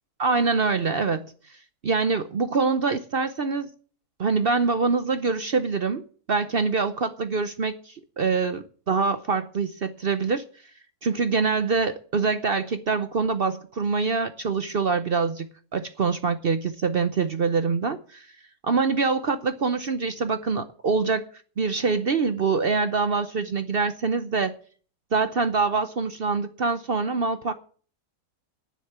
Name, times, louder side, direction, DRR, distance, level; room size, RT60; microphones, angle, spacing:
voice 1, 0.2-3.7 4.2-6.0 6.3-10.4 11.0-15.5 15.7-18.3 18.6-21.2 21.6-24.5 25.1-27.5, right 4 dB, 50° right, 0.7 m, -25 dB
10.0 x 7.4 x 9.4 m
omnidirectional pair, 1.7 m